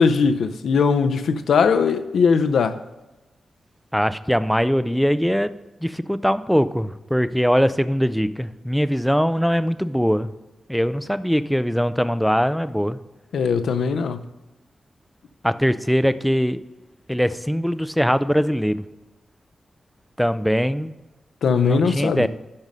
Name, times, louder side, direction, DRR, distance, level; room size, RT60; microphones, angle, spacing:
voice 1, 0.0-2.8 13.3-14.2 21.4-22.3, left 5 dB, 85° left, 0.5 m, -19 dB
voice 2, 3.9-5.5 5.8-10.3 10.7-13.0 15.4-16.6 17.1-18.8 20.2-20.9 21.6-22.3, equal, ahead, 0.3 m, -21 dB
11.0 x 5.3 x 5.4 m
wide cardioid pair, 145°, 0 cm